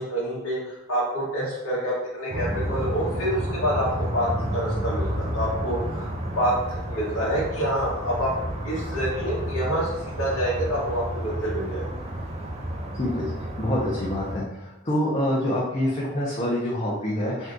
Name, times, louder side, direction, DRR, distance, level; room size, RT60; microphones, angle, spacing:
voice 1, 0.0-3.9 4.1-4.3 4.5-8.3 8.6-11.9, equal, 85° left, -8 dB, 0.9 m, -27 dB
sound 1, 2.3-14.4, equal, 30° right, 0.5 m, -31 dB
voice 2, 12.9-17.5, left 1 dB, 30° left, -6 dB, 0.6 m, -26 dB
2.7 x 2.4 x 3.5 m, 0.91 s
head